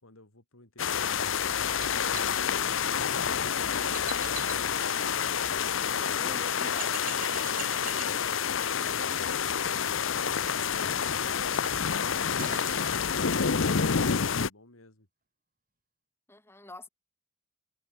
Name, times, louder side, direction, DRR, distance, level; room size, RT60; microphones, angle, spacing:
sound 1, 0.8-14.5, left 7 dB, 65° left, 0.8 m, -28 dB
sound 2, 1.8-5.6 6.1-6.2 6.6-13.1, right 8 dB, 40° right, 6.3 m, -45 dB
voice 1, 5.7-7.0 8.8-9.2 16.3-16.9, left 1 dB, 10° left, 5.0 m, -48 dB
voice 2, 12.2-15.1, left 2 dB, 85° left, 4.5 m, -56 dB
head